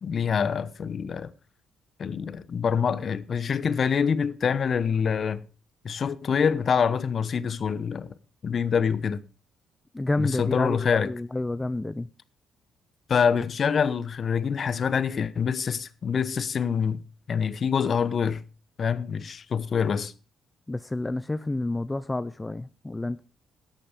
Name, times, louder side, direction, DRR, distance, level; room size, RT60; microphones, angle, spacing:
voice 1, 0.0-1.3 2.0-5.4 5.8-8.1 8.4-9.2 10.2-11.1 13.1-17.0 17.3-18.4 18.8-20.1, left 6 dB, 50° left, 1.0 m, -25 dB
voice 2, 9.9-12.1 20.7-23.2, left 2 dB, 15° left, 0.5 m, -29 dB
13.5 x 10.0 x 5.2 m
cardioid pair, 75°, 0 cm